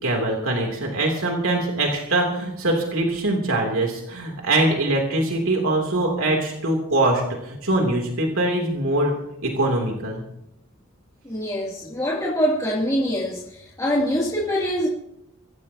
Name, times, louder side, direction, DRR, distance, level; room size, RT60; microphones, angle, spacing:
voice 1, 0.0-9.1 9.4-10.2, right 2 dB, 85° right, 0 dB, 3.1 m, -23 dB
voice 2, 11.2-14.9, equal, 15° left, -6 dB, 2.8 m, -24 dB
25.5 x 16.0 x 2.9 m, 0.80 s
head